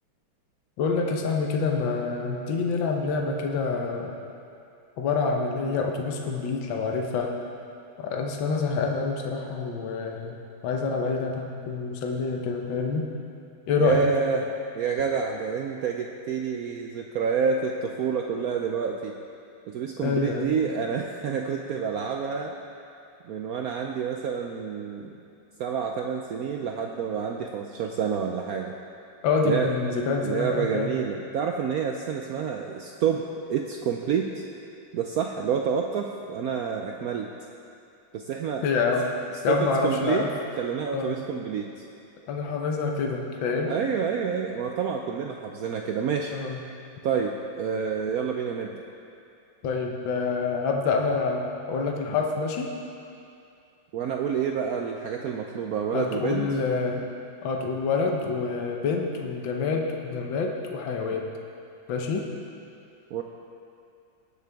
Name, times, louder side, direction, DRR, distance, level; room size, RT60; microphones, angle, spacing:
voice 1, 0.8-4.2 5.0-7.3 8.0-13.1 13.7-14.1 20.0-20.6 29.2-30.9 38.6-39.0 39.4-40.3 40.9-41.2 42.3-43.7 46.3-46.6 49.6-52.7 55.9-57.1 57.4-61.3 61.9-62.2, left 4 dB, 75° left, 1 dB, 1.7 m, -27 dB
voice 2, 13.8-14.4 14.7-19.1 19.7-22.5 23.2-25.2 25.6-28.7 29.4-29.8 30.2-34.4 34.9-37.3 38.1-38.7 39.5-40.2 40.6-41.7 43.7-46.3 47.0-48.7 53.9-56.5 63.1-63.2, right 6 dB, 85° right, 2 dB, 0.8 m, -28 dB
19.5 x 6.9 x 3.5 m, 2.5 s
omnidirectional pair, 2.2 m